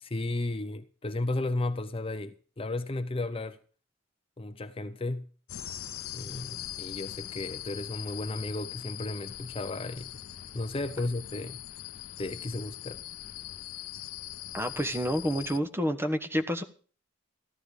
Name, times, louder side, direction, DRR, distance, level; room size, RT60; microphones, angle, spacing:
voice 1, 0.0-3.6 4.4-5.2 6.1-10.1 10.5-11.6 12.2-13.0, left 2 dB, 25° left, 0.6 m, -34 dB
sound 1, 5.5-15.6, left 12 dB, 85° left, 0.6 m, -41 dB
voice 2, 14.5-16.6, equal, 10° right, 1.2 m, -29 dB
15.0 x 12.0 x 5.0 m
head